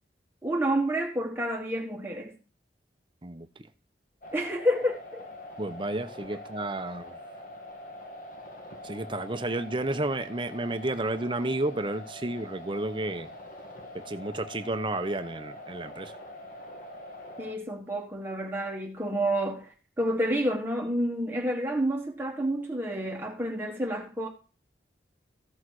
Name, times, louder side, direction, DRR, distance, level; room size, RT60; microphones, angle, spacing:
voice 1, 0.4-2.3 4.3-5.2 17.4-24.3, right 1 dB, 10° right, 1.5 m, -29 dB
sound 1, 4.2-17.5, left 1 dB, 50° left, 1.8 m, -44 dB
voice 2, 5.6-7.2 8.8-13.3 13.9-16.1, right 2 dB, 30° right, 0.9 m, -31 dB
14.5 x 6.5 x 4.8 m
head